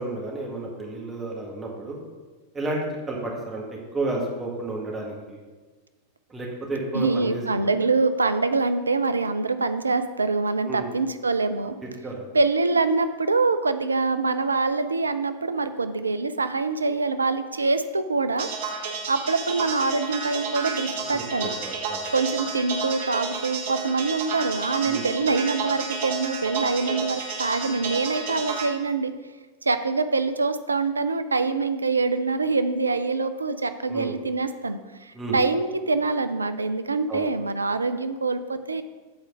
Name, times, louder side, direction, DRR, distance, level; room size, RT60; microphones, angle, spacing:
voice 1, 0.0-2.0 2.5-3.6 3.9-5.4 6.3-7.7 10.6-10.9 12.0-12.3 21.1-21.2 21.6-22.0 24.8-25.1 33.9-34.2 35.1-35.4 37.1-37.3, right 2 dB, 15° right, -2 dB, 1.8 m, -31 dB
voice 2, 6.9-11.8 12.3-18.5 19.1-21.5 22.1-29.1 29.6-38.8, right 3 dB, 75° right, 11 dB, 0.4 m, -25 dB
sound 1, 18.4-28.7, right 5 dB, 55° right, 1.0 m, -31 dB
8.0 x 4.4 x 5.7 m, 1.3 s
figure-of-eight pair, 90°, 0 cm